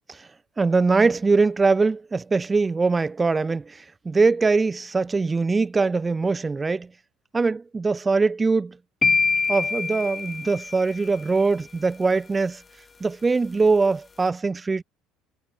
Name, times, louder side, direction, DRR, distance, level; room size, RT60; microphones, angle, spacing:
voice 1, 0.6-6.9 7.3-8.8 9.5-12.6 13.0-14.8, right 4 dB, 15° right, 1.4 m, -22 dB
sound 1, 9.0-11.1, left 4 dB, 20° left, 4.0 m, -24 dB
cardioid pair, 130°, 0 cm